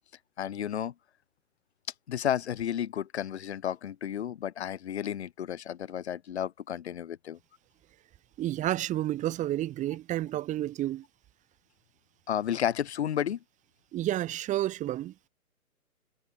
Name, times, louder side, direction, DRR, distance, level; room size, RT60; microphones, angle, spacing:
voice 1, 0.4-0.9 2.1-7.4 12.3-13.4, left 10 dB, 45° left, 7.4 m, -32 dB
voice 2, 8.4-11.0 13.9-15.1, right 14 dB, 15° right, 4.8 m, -30 dB
figure-of-eight pair, 135°, 44 cm